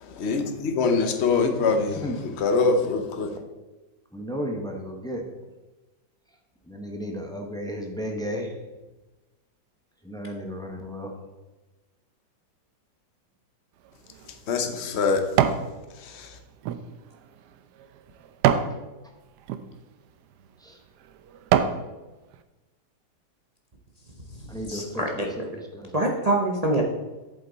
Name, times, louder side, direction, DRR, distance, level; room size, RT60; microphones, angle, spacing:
voice 1, 0.0-3.4 14.5-15.2 15.9-16.4, left 4 dB, 50° left, 6 dB, 0.9 m, -24 dB
voice 2, 4.1-5.2 6.7-8.5 10.1-11.1 24.5-24.8, equal, 5° left, 2 dB, 0.5 m, -33 dB
sound 1, 13.9-15.7 16.2-18.8 19.4-19.6 20.3-20.5 21.0-21.9 22.3-22.4, right 9 dB, 75° right, 1.0 m, -26 dB
voice 3, 24.3-25.5 25.9-26.8, right 1 dB, 55° right, 0 dB, 0.4 m, -26 dB
8.2 x 7.6 x 4.0 m, 1.1 s
omnidirectional pair, 2.1 m